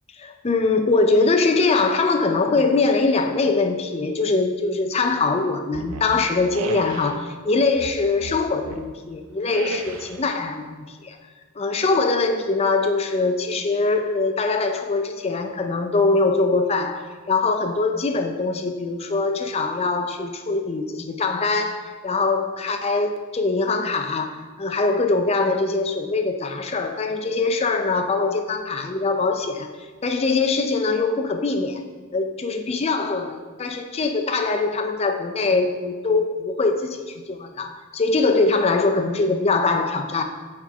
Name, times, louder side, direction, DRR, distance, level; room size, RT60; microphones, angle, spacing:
voice 1, 0.2-11.2 11.6-29.7 30.0-31.8 32.1-40.2, left 3 dB, 30° left, 6 dB, 0.4 m, -22 dB
sound 1, 5.7-7.2 7.7-8.9 9.4-10.3, right 3 dB, 80° right, 0.5 m, -34 dB
6.0 x 4.3 x 4.4 m, 1.4 s
head